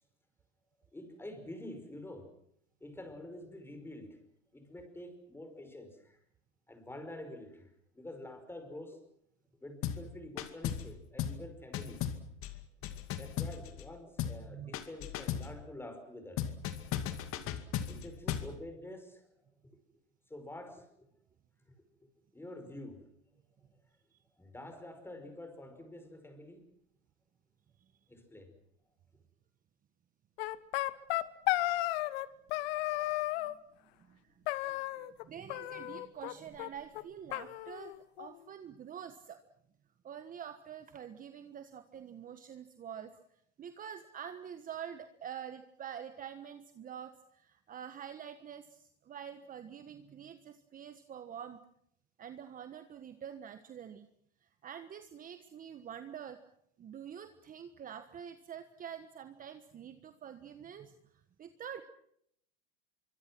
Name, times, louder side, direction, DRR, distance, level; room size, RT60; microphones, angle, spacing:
voice 1, 0.9-2.3 2.8-4.2 4.5-6.2 6.7-9.0 9.6-12.0 13.2-16.5 17.9-19.5 20.3-21.1 22.3-23.1 23.6-23.7 24.4-26.7 28.1-28.5, left 1 dB, 5° left, 8 dB, 5.4 m, -47 dB
sound 1, 9.8-10.1 10.4-10.9 11.2-11.4 11.7-13.9 14.2-14.4 14.7-15.5 16.4-18.5, left 10 dB, 40° left, 2.4 m, -36 dB
sound 2, 30.4-32.3 32.5-33.5 34.5-35.2 35.5-36.3 36.6-36.7 36.9-37.0 37.3-38.4, left 17 dB, 60° left, 1.4 m, -34 dB
voice 2, 33.9-39.4 40.0-51.6 52.2-54.1 54.4-56.4 56.8-61.8, right 8 dB, 25° right, 9 dB, 1.4 m, -47 dB
25.5 x 24.5 x 6.1 m, 0.73 s
hypercardioid pair, 115°, 34 cm